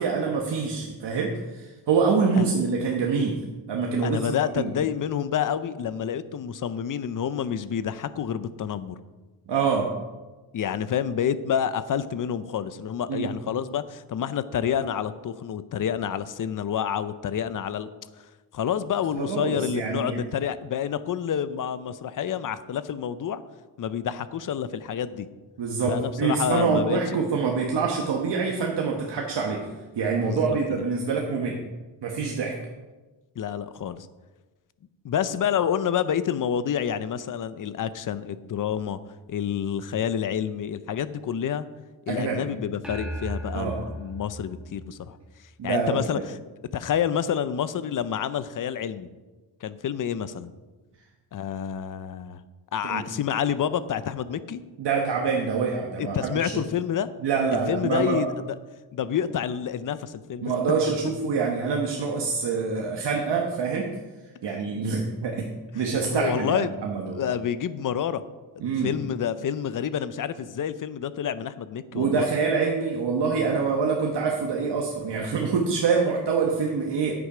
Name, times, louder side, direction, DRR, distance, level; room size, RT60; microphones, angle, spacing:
voice 1, 0.0-4.2 4.6-4.7 9.5-9.9 13.1-13.3 19.1-20.2 25.6-29.7 30.0-31.6 32.0-32.5 42.1-42.4 43.5-43.8 45.6-46.3 52.8-53.1 54.8-56.6 57.2-58.2 60.4-63.9 64.4-65.5 65.7-67.3 68.6-69.0 71.9-77.1, right 5 dB, 65° right, 0 dB, 1.3 m, -26 dB
voice 2, 4.0-9.0 10.5-17.9 18.5-23.4 23.8-25.3 25.9-27.0 30.2-30.6 33.4-34.1 35.0-39.0 39.3-41.7 42.1-45.2 45.6-46.4 46.7-49.1 49.6-50.5 51.3-52.4 52.7-54.6 56.0-57.1 57.5-58.6 58.9-60.5 66.1-66.7 67.1-68.2 68.6-72.3, left 8 dB, 45° left, 14 dB, 0.6 m, -28 dB
sound 1, 42.8-45.5, right 1 dB, ahead, 1.6 m, -36 dB
9.8 x 8.5 x 4.9 m, 1.2 s
wide cardioid pair, 140°, 44 cm